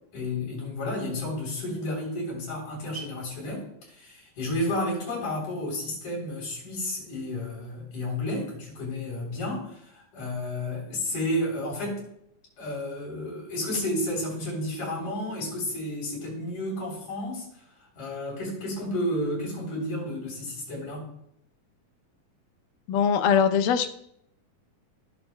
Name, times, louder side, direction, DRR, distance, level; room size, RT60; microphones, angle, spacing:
voice 1, 0.1-12.0 12.6-17.5 18.0-21.1, left 1 dB, 65° left, -4 dB, 4.9 m, -31 dB
voice 2, 22.9-23.9, left 7 dB, 80° left, 8 dB, 2.2 m, -22 dB
17.5 x 6.8 x 2.2 m, 0.75 s
omnidirectional pair, 3.8 m